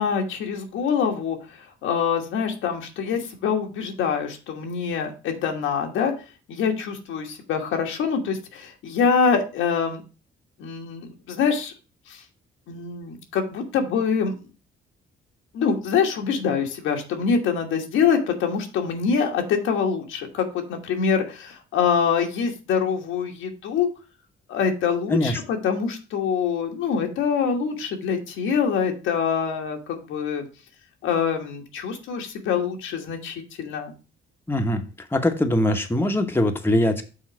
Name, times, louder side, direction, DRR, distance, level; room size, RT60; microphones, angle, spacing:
voice 1, 0.0-6.1 6.5-10.0 10.6-11.7 12.1-12.2 12.7-14.3 15.5-23.9 24.5-30.5 31.0-33.9, left 6 dB, 90° left, 2 dB, 1.4 m, -25 dB
voice 2, 34.5-34.8 35.1-37.0, left 1 dB, 10° left, 4 dB, 1.0 m, -22 dB
6.4 x 3.8 x 6.1 m, 0.33 s
cardioid pair, 90°, 20 cm